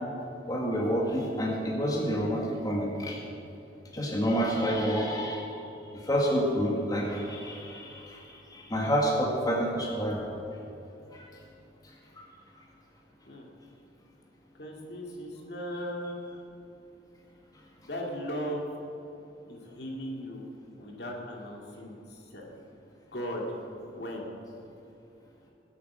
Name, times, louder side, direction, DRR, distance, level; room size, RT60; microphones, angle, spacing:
voice 1, 0.5-3.2 3.9-5.5 6.0-8.2 8.5-10.3 11.1-11.2, equal, 20° left, -2 dB, 2.1 m, -28 dB
voice 2, 14.6-16.3 17.8-18.6 19.5-20.4 20.8-22.4 23.1-23.4 23.9-24.3, equal, 65° left, -1 dB, 2.4 m, -37 dB
21.0 x 8.3 x 6.2 m, 2.9 s
head